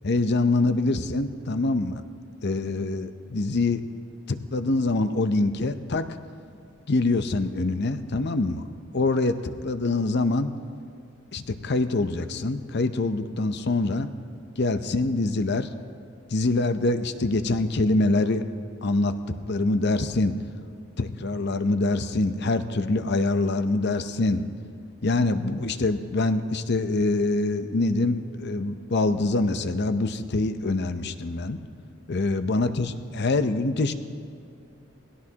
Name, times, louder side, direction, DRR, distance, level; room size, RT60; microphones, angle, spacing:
voice 1, 0.0-2.0 2.4-3.8 4.3-6.1 6.9-8.7 8.9-10.5 11.3-14.1 14.6-15.7 16.3-18.4 18.8-19.1 19.5-20.4 21.0-24.4 25.0-31.6 32.1-33.9, left 2 dB, 60° left, 10 dB, 0.7 m, -25 dB
20.0 x 17.0 x 2.9 m, 2.5 s
head